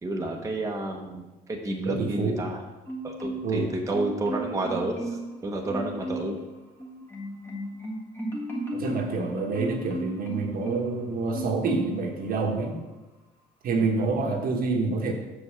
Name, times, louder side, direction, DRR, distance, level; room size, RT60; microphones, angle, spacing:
voice 1, 0.0-2.6 3.0-6.4, right 2 dB, 20° right, 0 dB, 1.1 m, -30 dB
voice 2, 1.8-2.4 3.4-3.7 8.7-12.8 13.6-15.1, right 3 dB, 60° right, 2 dB, 1.3 m, -27 dB
Marimba xylophone, 2.9-3.6 3.9-5.4 5.7-6.4 6.8-11.0 11.3-12.1 12.4-12.6, right 1 dB, 15° left, 1.6 m, -34 dB
6.2 x 5.3 x 6.3 m, 1.1 s
cardioid pair, 110°, 17 cm